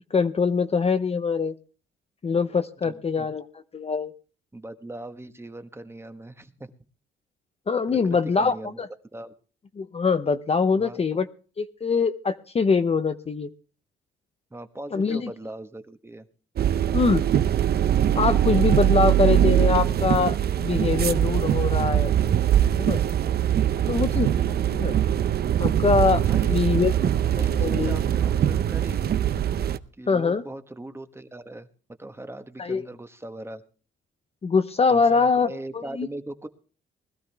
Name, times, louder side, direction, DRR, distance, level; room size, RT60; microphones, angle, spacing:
voice 1, 0.1-1.5 2.2-3.5 3.7-4.1 7.7-8.9 9.8-11.3 11.6-13.5 14.9-15.3 16.9-17.2 18.1-22.1 22.8-23.0 23.9-24.9 25.6-26.9 27.6-28.0 30.1-30.4 32.6-32.8 34.4-36.1, left 5 dB, 30° left, 9 dB, 0.8 m, -23 dB
voice 2, 2.8-3.3 4.5-6.7 8.0-8.9 9.1-9.3 10.8-11.0 14.5-16.3 23.7-24.1 26.2-26.7 27.3-29.1 30.0-31.7 32.0-33.6 34.9-36.5, right 1 dB, 10° right, 8 dB, 1.2 m, -40 dB
sound 1, 16.6-29.8, right 10 dB, 55° right, 0.7 m, -22 dB
20.5 x 13.0 x 3.4 m, 0.39 s
cardioid pair, 90°, 20 cm